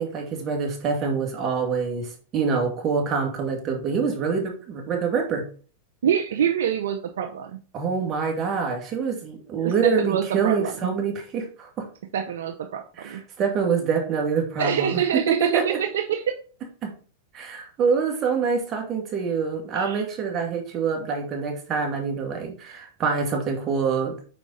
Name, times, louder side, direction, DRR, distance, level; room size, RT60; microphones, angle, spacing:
voice 1, 0.0-5.4 7.7-11.9 13.0-15.8 16.8-16.9 17.3-24.2, right 5 dB, 35° right, 1 dB, 2.2 m, -25 dB
voice 2, 6.0-7.6 9.6-10.9 12.1-13.2 14.6-16.3 19.7-20.0, right 9 dB, 75° right, 5 dB, 0.7 m, -26 dB
5.6 x 4.6 x 4.0 m, 0.40 s
hypercardioid pair, 105°, 0 cm